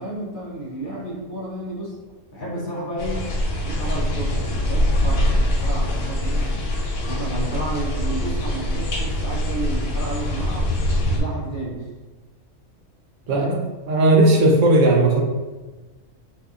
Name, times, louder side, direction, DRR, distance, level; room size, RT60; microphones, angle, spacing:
voice 1, 0.0-2.0 2.3-3.2 3.6-6.5 7.1-10.7 11.2-11.9 13.3-13.6, right 1 dB, 45° left, -5 dB, 0.8 m, -31 dB
sound 1, 3.0-11.2, left 1 dB, 80° left, 1.1 m, -23 dB
voice 2, 13.9-15.2, right 2 dB, 75° right, 1 dB, 0.9 m, -16 dB
2.7 x 2.6 x 3.5 m, 1.2 s
omnidirectional pair, 1.4 m